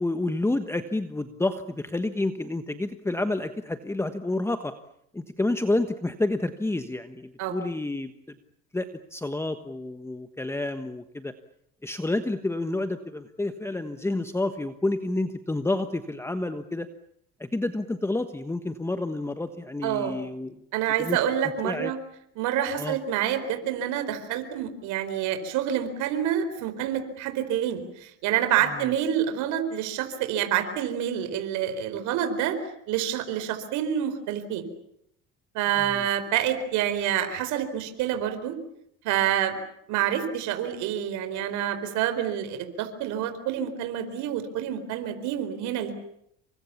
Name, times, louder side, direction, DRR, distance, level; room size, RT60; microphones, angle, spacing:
voice 1, 0.0-4.7 5.1-8.4 8.7-11.3 11.8-16.9 17.4-20.5 21.0-21.2 21.6-21.9 22.7-23.0 28.7-28.9 35.8-36.1, left 2 dB, 10° left, 9 dB, 1.3 m, -29 dB
voice 2, 19.8-20.2 20.7-22.0 22.4-32.6 32.9-34.6 35.5-38.6 39.0-39.6 39.9-45.9, right 10 dB, 80° right, 9 dB, 4.6 m, -27 dB
28.5 x 24.0 x 7.2 m, 0.75 s
cardioid pair, 115°, 29 cm